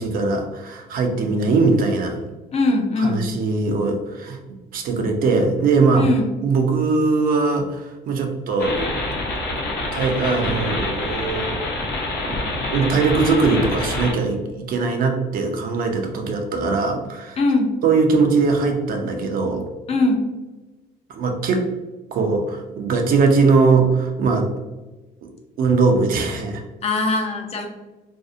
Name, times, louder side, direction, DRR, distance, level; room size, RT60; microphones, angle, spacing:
voice 1, 0.0-2.2 3.0-4.4 4.7-6.1 6.4-8.9 9.9-11.6 12.2-12.4 12.7-17.4 17.8-19.7 21.1-21.6 22.1-24.5 25.6-26.6, right 4 dB, 60° right, 4 dB, 0.5 m, -20 dB
voice 2, 2.5-3.3 5.9-6.3 17.4-17.7 19.9-20.3 26.8-27.7, left 2 dB, 40° left, 3 dB, 0.4 m, -20 dB
sound 1, 8.6-14.1, left 2 dB, 70° left, 0.8 m, -26 dB
2.6 x 2.0 x 2.5 m, 1.2 s
cardioid pair, 110°, 17 cm